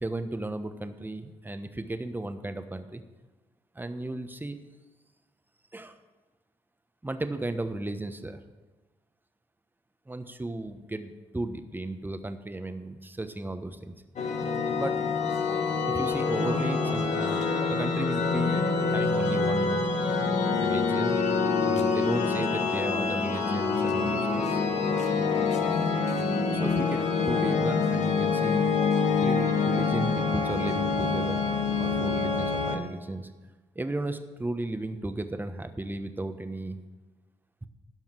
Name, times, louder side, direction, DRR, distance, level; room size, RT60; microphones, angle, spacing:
voice 1, 0.0-3.0 3.7-4.6 5.7-5.9 7.0-8.4 10.1-13.9 14.7-15.0 15.9-19.8 20.6-21.2 21.6-24.6 26.5-28.7 29.2-31.4 31.8-33.3 33.7-36.8 37.6-37.7, right 2 dB, 15° right, 9 dB, 1.1 m, -35 dB
sound 1, 14.2-32.8, left 4 dB, 60° left, 1.4 m, -26 dB
12.0 x 5.6 x 8.1 m, 1.2 s
hypercardioid pair, 50°, 13 cm